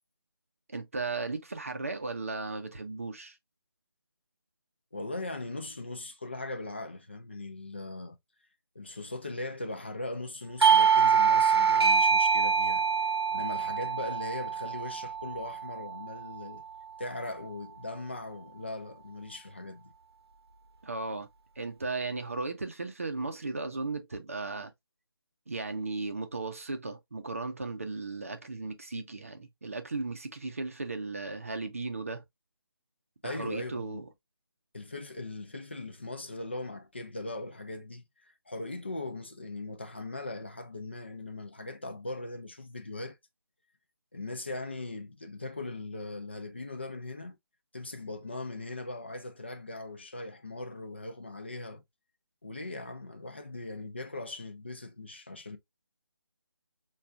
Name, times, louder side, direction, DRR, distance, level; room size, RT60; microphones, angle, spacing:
voice 1, 0.7-3.4 20.8-21.3 21.6-24.7 25.5-32.2 33.2-34.1, right 3 dB, 35° right, 0.6 m, -36 dB
voice 2, 4.9-8.2 8.8-12.8 13.3-16.6 17.0-19.9 33.2-34.0 34.7-38.1 38.5-43.2 44.1-47.4 47.7-51.8 52.4-55.6, left 2 dB, 25° left, 0.4 m, -39 dB
Doorbell, 10.6-15.9, right 6 dB, 80° right, 0.8 m, -24 dB
5.7 x 2.3 x 2.5 m
figure-of-eight pair, 175°, 13 cm